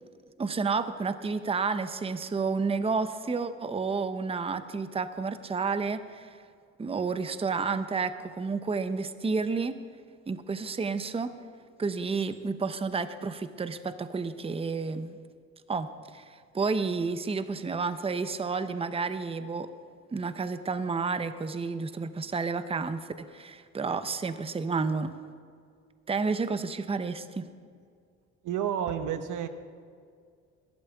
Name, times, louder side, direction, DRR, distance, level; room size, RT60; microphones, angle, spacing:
voice 1, 0.4-6.4 6.8-9.8 10.3-11.3 11.8-15.2 15.7-19.7 20.1-25.1 26.1-27.5, right 4 dB, 20° right, 11 dB, 0.7 m, -31 dB
voice 2, 28.4-29.5, right 9 dB, 80° right, 10 dB, 0.9 m, -30 dB
21.0 x 12.0 x 3.5 m, 2.2 s
cardioid pair, 90°, 30 cm